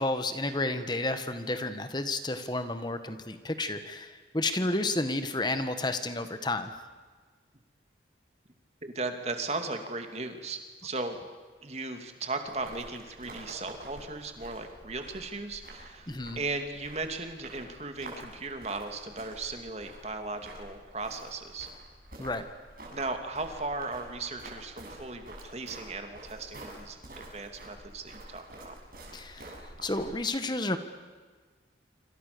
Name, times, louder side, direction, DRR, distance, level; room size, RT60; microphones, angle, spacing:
voice 1, 0.0-6.7 16.1-16.4 22.2-22.4 29.1-29.5 29.8-30.8, left 2 dB, 25° left, 9 dB, 1.6 m, -31 dB
voice 2, 8.8-11.2 11.6-21.7 22.9-27.0 27.3-28.7, right 3 dB, 35° right, 6 dB, 2.8 m, -37 dB
sound 1, 12.4-30.1, right 1 dB, 50° right, 7.1 m, -48 dB
27.0 x 26.5 x 7.0 m, 1.4 s
head